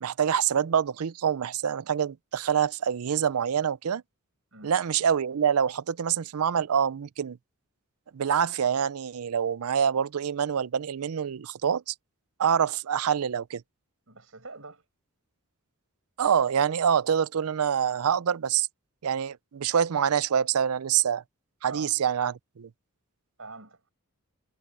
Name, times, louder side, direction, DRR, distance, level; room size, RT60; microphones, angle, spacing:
voice 1, 0.0-4.0 4.6-7.4 8.1-11.9 12.4-13.6 16.2-18.7 19.0-21.2 21.6-22.7, right 8 dB, 80° right, 0.5 m, -26 dB
voice 2, 14.1-14.8 21.7-21.9 23.4-23.9, right 3 dB, 65° right, 7.8 m, -44 dB
head